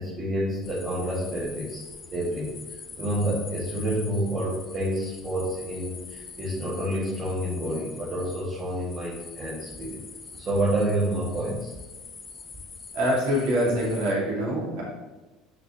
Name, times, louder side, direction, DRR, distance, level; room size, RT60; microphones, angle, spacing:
voice 1, 0.0-1.8 2.1-2.6 3.0-10.0 10.3-11.7, right 1 dB, 35° right, -7 dB, 2.1 m, -28 dB
sound 1, 0.6-14.1, left 4 dB, 30° left, 1.0 m, -44 dB
voice 2, 12.9-14.8, equal, 60° right, -5 dB, 2.4 m, -25 dB
10.0 x 6.2 x 3.0 m, 1.2 s
figure-of-eight pair, 65°, 0 cm